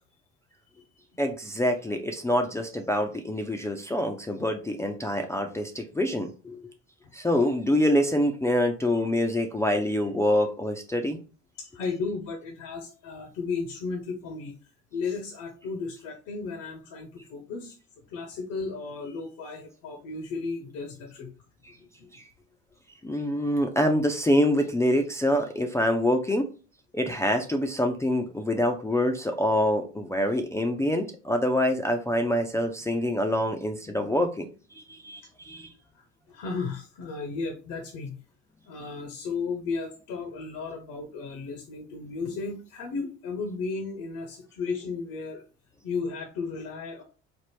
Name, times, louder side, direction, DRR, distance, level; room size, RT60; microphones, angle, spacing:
voice 1, 1.2-6.6 7.1-11.2 22.1-22.2 23.0-26.5 26.9-34.5 34.8-35.7, left 1 dB, 10° left, 3 dB, 0.3 m, -26 dB
voice 2, 11.6-14.5 14.9-17.8 18.1-21.3 35.9-38.2 38.7-45.4 45.8-47.0, left 4 dB, 60° left, 4 dB, 0.7 m, -34 dB
3.4 x 2.0 x 2.9 m, 0.34 s
hypercardioid pair, 70°, 36 cm